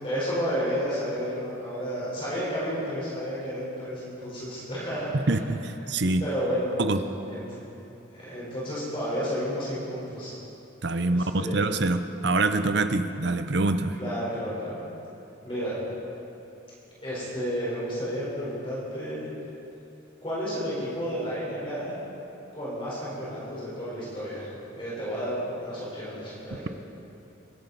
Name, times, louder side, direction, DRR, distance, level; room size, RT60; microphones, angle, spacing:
voice 1, 0.0-5.4 6.2-6.7 7.3-7.4 8.1-10.3 11.1-11.6 14.0-14.8 15.4-15.8 17.0-19.3 20.2-22.0 22.5-26.7, equal, 25° left, -8 dB, 4.3 m, -31 dB
voice 2, 5.3-6.3 6.8-7.0 10.8-14.0, right 2 dB, 55° right, 10 dB, 0.7 m, -25 dB
24.0 x 11.5 x 4.1 m, 2.9 s
head